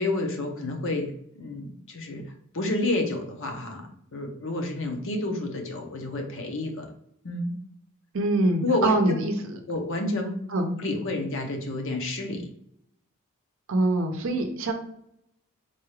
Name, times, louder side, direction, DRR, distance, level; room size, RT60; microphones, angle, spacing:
voice 1, 0.0-2.2 2.5-6.9 7.2-7.5 8.6-9.2 9.7-10.3 10.8-12.5, left 2 dB, 60° left, 3 dB, 0.7 m, -29 dB
voice 2, 8.1-9.6 10.5-10.8 13.7-14.7, right 2 dB, 60° right, 5 dB, 0.6 m, -24 dB
4.1 x 2.3 x 3.2 m, 0.73 s
head